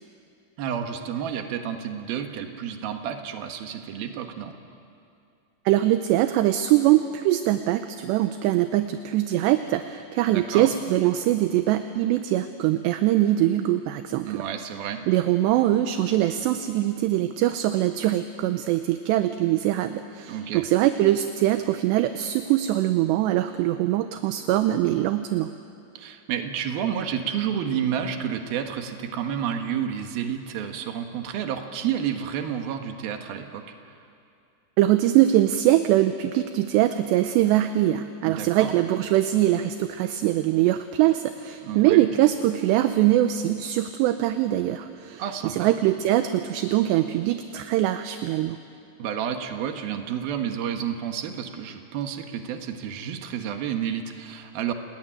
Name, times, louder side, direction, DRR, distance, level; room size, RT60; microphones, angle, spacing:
voice 1, 0.6-4.5 10.3-10.7 14.2-15.0 20.3-20.7 26.0-33.6 38.3-38.7 41.6-42.1 45.2-45.7 49.0-54.7, right 8 dB, 65° right, 5 dB, 3.0 m, -30 dB
voice 2, 5.7-14.4 15.1-25.5 34.8-48.6, right 14 dB, 80° right, 9 dB, 2.7 m, -22 dB
30.0 x 20.5 x 9.1 m, 2.5 s
omnidirectional pair, 5.4 m